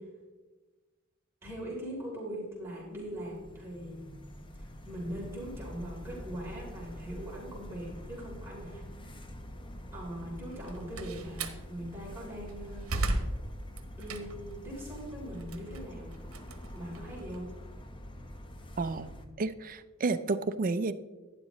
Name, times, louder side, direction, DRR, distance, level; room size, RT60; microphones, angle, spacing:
voice 1, 1.4-4.0 4.8-8.8 9.9-13.1 14.0-16.1 16.7-17.5, equal, 10° right, -6 dB, 3.4 m, -41 dB
sound 1, 2.7-19.3, equal, 25° left, 0.8 m, -46 dB
Slam, 10.5-11.6 12.2-14.6 15.0-17.4, right 2 dB, 80° right, 1.0 m, -35 dB
voice 2, 18.8-19.1 19.4-20.9, right 3 dB, 40° right, 11 dB, 0.5 m, -31 dB
11.5 x 9.8 x 3.1 m, 1.2 s
head